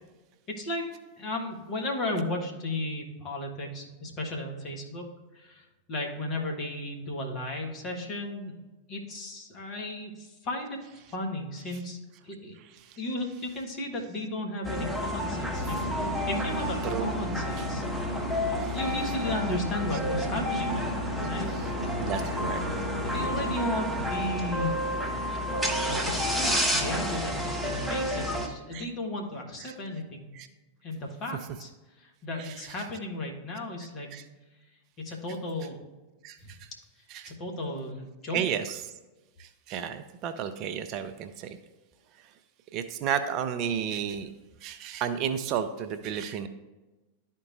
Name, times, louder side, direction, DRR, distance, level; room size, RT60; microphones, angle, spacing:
voice 1, 0.5-0.9 1.2-5.0 5.3-8.6 8.9-10.8 11.1-12.0 12.2-12.6 13.0-17.8 18.7-20.8 21.2-21.5 23.0-24.8 25.9-30.3 30.8-31.7 32.0-34.1 35.0-35.8 36.4-36.5 37.3-38.5, left 1 dB, 35° left, 1 dB, 1.6 m, -34 dB
sound 1, 14.6-28.5, equal, 5° right, 1.0 m, -30 dB
sound 2, 15.5-23.6, left 1 dB, 85° left, 0.6 m, -36 dB
voice 2, 22.0-22.6 28.7-28.9 30.4-30.5 32.4-32.5 34.1-34.2 36.2-36.6 37.1-37.3 38.3-38.8 39.4-41.6 42.7-44.3 44.6-46.5, right 8 dB, 40° right, 10 dB, 0.4 m, -32 dB
11.5 x 4.5 x 2.5 m, 1.1 s
figure-of-eight pair, 90°, 0 cm